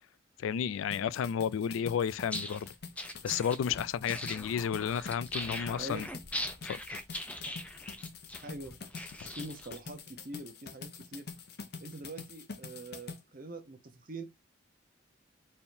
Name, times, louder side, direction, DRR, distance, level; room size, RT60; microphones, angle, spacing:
voice 1, 0.4-2.7 3.2-6.1 6.6-6.8, left 8 dB, 80° left, 0.3 m, -32 dB
sound 1, 0.9-13.2, left 4 dB, 50° left, 0.8 m, -46 dB
sound 2, 2.2-9.8, left 1 dB, 5° left, 0.5 m, -41 dB
voice 2, 5.5-6.1 6.6-6.7 7.5-7.6 8.4-8.8 9.2-11.3 11.8-14.2, right 2 dB, 45° right, 0.8 m, -44 dB
4.4 x 3.4 x 2.7 m
head